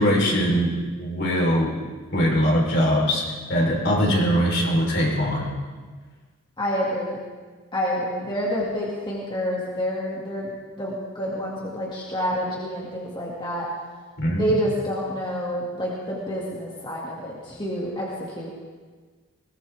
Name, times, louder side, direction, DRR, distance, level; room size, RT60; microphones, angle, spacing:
voice 1, 0.0-1.8 2.1-3.2 3.5-5.5 14.2-14.4, equal, 55° left, -2 dB, 4.1 m, -21 dB
voice 2, 6.6-7.2 7.7-10.5 10.8-13.7 14.4-18.5, equal, 25° left, -5 dB, 2.3 m, -28 dB
21.0 x 18.5 x 3.6 m, 1.5 s
head